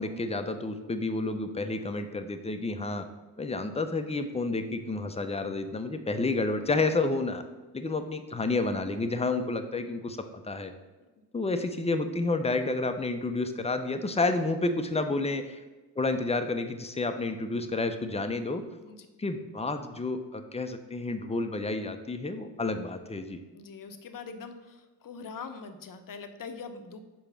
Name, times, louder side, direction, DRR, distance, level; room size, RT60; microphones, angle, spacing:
voice 1, 0.0-3.1 3.4-7.4 7.7-10.2 10.5-10.7 11.3-15.6 16.0-18.6 19.2-23.4, left 3 dB, 15° left, 7 dB, 0.7 m, -30 dB
voice 2, 23.5-27.0, left 5 dB, 45° left, 8 dB, 0.9 m, -43 dB
5.0 x 4.7 x 5.7 m, 1.2 s
hypercardioid pair, 45°, 46 cm